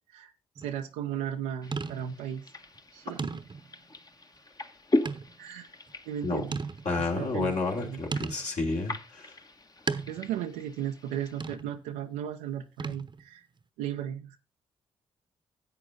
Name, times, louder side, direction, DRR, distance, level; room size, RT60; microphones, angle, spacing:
sound 1, 0.6-0.8 1.7-2.3 2.7-2.8 3.2-3.8 5.0-5.4 5.9-6.0 6.5-7.1 8.1-8.6 9.9-10.4 11.4-11.8 12.8-13.3, right 4 dB, 35° right, 1.0 m, -35 dB
voice 1, 0.6-2.5 2.9-3.3 5.4-5.7 6.0-6.6 7.0-8.0 10.1-13.5 13.8-14.4, right 10 dB, 85° right, 4 dB, 0.7 m, -35 dB
sound 2, 1.6-11.6, left 2 dB, 30° left, 1.3 m, -38 dB
voice 2, 6.8-9.3, left 3 dB, 60° left, -1 dB, 3.2 m, -30 dB
11.0 x 8.0 x 3.8 m, 0.31 s
hypercardioid pair, 40°, 13 cm